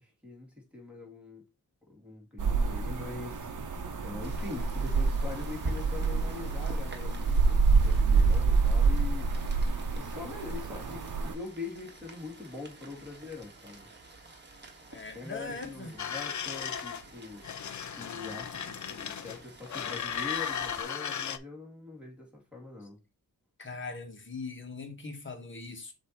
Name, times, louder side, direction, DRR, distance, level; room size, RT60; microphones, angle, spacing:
voice 1, 0.0-1.4 1.9-9.3 10.0-13.9 15.1-17.4 18.0-23.0, left 3 dB, 5° right, 2.4 m, -43 dB
sound 1, 2.4-11.3, right 4 dB, 55° right, 0.9 m, -27 dB
Rain, 4.2-20.8, right 2 dB, 30° right, 1.4 m, -47 dB
voice 2, 14.9-15.9 23.6-25.9, left 3 dB, 30° left, 1.4 m, -40 dB
sound 2, 16.0-17.0 17.4-19.4 19.7-21.4, left 8 dB, 50° left, 0.6 m, -36 dB
7.2 x 2.9 x 4.6 m
wide cardioid pair, 130°, 38 cm